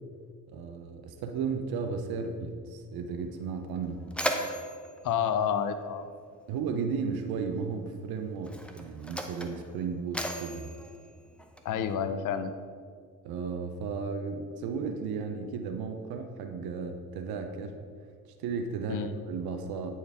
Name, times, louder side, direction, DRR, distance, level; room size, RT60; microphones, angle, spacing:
voice 1, 0.5-4.1 6.5-10.7 13.2-17.8 18.4-19.9, right 5 dB, 80° right, 6 dB, 0.7 m, -34 dB
Mechanisms, 3.2-3.3 3.7-6.4 7.4-7.5 8.3-11.9, equal, 5° left, 0.6 m, -37 dB
voice 2, 5.0-6.0 11.6-12.5 18.9-19.1, left 8 dB, 55° left, 10 dB, 0.6 m, -29 dB
9.2 x 4.5 x 3.5 m, 2.1 s
cardioid pair, 85°, 37 cm